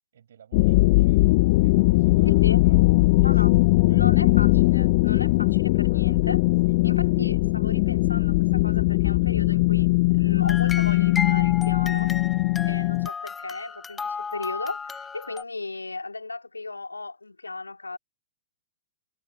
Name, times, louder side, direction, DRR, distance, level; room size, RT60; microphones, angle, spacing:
voice 1, 0.1-1.3 1.6-3.3 3.6-4.3, right 9 dB, 65° right, 7.2 m, -52 dB
sound 1, 0.5-13.1, left 22 dB, 50° left, 0.5 m, -20 dB
voice 2, 2.2-2.6 3.2-3.5 3.9-6.4 6.8-9.9 10.2-12.1 12.6-18.0, left 3 dB, 85° left, 2.6 m, -35 dB
sound 2, 10.4-15.4, left 5 dB, 15° left, 1.2 m, -34 dB
figure-of-eight pair, 105°, 0 cm